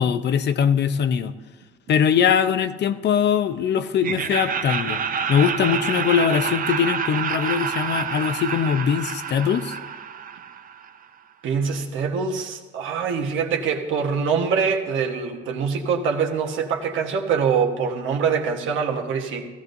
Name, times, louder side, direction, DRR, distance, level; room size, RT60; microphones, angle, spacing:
voice 1, 0.0-1.3 1.9-5.0 5.3-9.8, left 7 dB, 60° left, 10 dB, 0.6 m, -21 dB
Laughter, 4.0-11.0, right 6 dB, 45° right, 0.6 m, -28 dB
voice 2, 11.4-19.4, right 6 dB, 80° right, 2 dB, 1.3 m, -24 dB
15.5 x 14.5 x 2.7 m, 1.3 s
cardioid pair, 90°, 20 cm